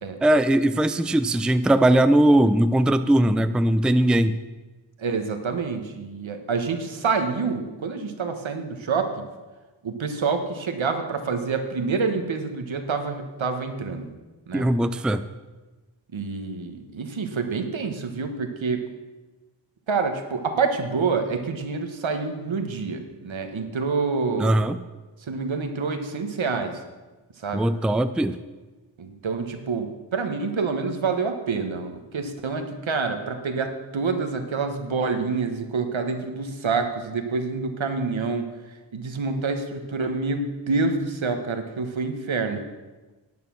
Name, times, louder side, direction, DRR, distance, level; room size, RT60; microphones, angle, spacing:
voice 1, 0.2-4.3 14.5-15.2 24.4-24.8 27.5-28.4, right 1 dB, ahead, 11 dB, 0.5 m, -20 dB
voice 2, 5.0-9.2 9.8-14.1 14.5-14.7 16.1-18.8 19.9-24.5 25.2-26.8 27.4-27.7 29.0-38.5 38.9-42.6, right 4 dB, 75° right, 6 dB, 1.5 m, -27 dB
11.0 x 8.7 x 6.2 m, 1.2 s
cardioid pair, 50°, 47 cm